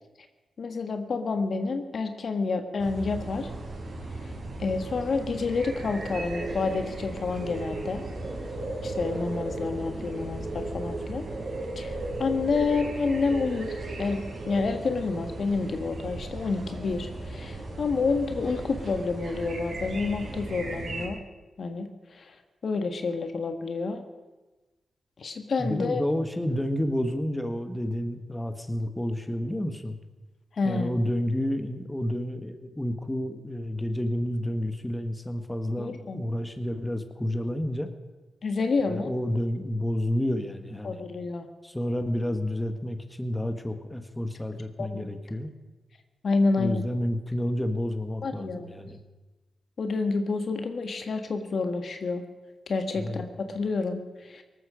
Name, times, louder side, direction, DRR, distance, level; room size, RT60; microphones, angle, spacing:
voice 1, 0.6-3.5 4.6-8.0 8.8-11.2 11.7-14.2 14.4-21.2 21.6-21.9 22.1-22.3 22.6-24.0 25.2-26.0 30.6-30.9 35.8-36.2 38.4-39.1 40.8-41.5 44.8-45.1 46.2-46.8 48.2-48.7 49.8-52.2 52.7-54.4, left 4 dB, 60° left, 7 dB, 1.5 m, -29 dB
sound 1, 2.8-21.1, right 2 dB, 60° right, 5.5 m, -36 dB
voice 2, 25.6-30.0 30.6-37.9 38.9-41.0 41.6-45.5 46.6-49.0 52.9-53.3, left 1 dB, 10° left, 8 dB, 1.5 m, -30 dB
18.5 x 13.5 x 5.1 m, 1.2 s
cardioid pair, 55°, 0 cm